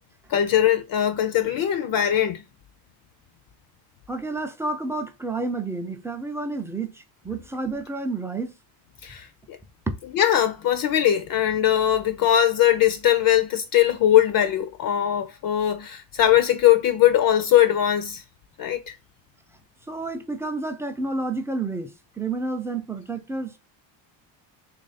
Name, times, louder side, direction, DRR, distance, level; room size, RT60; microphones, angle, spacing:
voice 1, 0.3-2.4 9.0-9.6 10.1-18.2 18.6-18.9, left 11 dB, 50° left, 0.5 m, -20 dB
voice 2, 4.1-8.5 9.9-10.0 19.9-23.5, right 3 dB, 5° right, 0.3 m, -30 dB
3.0 x 2.5 x 4.0 m
cardioid pair, 105°, 46 cm